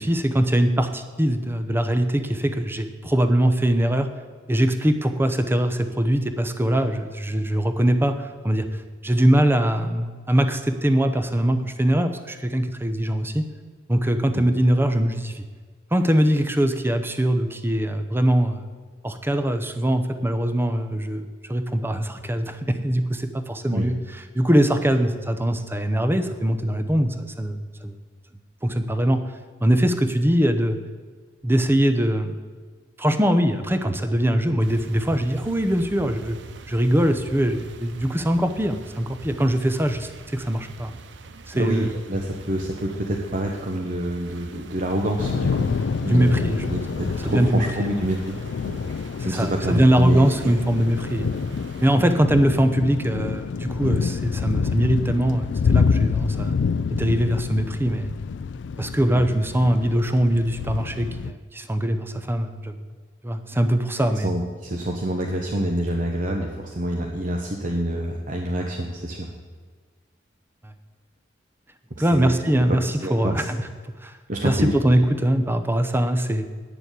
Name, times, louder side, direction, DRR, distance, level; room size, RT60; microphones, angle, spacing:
voice 1, 0.1-4.1 4.5-13.5 13.9-15.5 15.9-18.6 19.0-27.9 28.6-29.2 29.6-30.8 31.4-32.5 33.0-36.4 36.7-40.9 41.5-41.9 46.0-46.6 47.2-47.9 49.2-51.3 51.8-56.5 56.9-58.1 58.8-62.7 63.2-64.3 70.6-70.7 72.0-73.6 74.0-74.2 74.4-76.4, right 1 dB, 10° right, 8 dB, 0.7 m, -22 dB
sound 1, 34.6-52.0, right 3 dB, 80° right, 0.7 m, -44 dB
voice 2, 41.5-48.3 48.7-48.8 49.2-50.4 59.1-59.2 64.2-69.3 72.0-72.3 72.7-73.4 74.3-74.7, right 1 dB, 45° right, 1 dB, 1.0 m, -27 dB
Thunder / Rain, 45.2-61.3, left 5 dB, 80° left, 0.4 m, -27 dB
9.1 x 6.9 x 8.3 m, 1.5 s
head